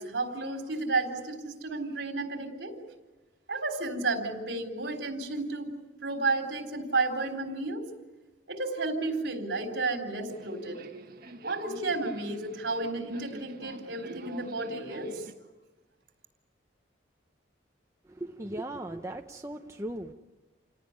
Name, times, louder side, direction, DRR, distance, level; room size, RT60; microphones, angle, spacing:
voice 1, 0.0-2.7 3.5-5.7 6.0-7.9 8.5-10.8 11.4-15.2, right 3 dB, 65° right, 5 dB, 4.0 m, -32 dB
Subway metro underground, 10.3-15.3, right 2 dB, 50° right, 1.8 m, -45 dB
voice 2, 18.0-20.1, right 1 dB, 15° right, 3 dB, 0.8 m, -38 dB
28.5 x 18.5 x 9.7 m, 1.2 s
head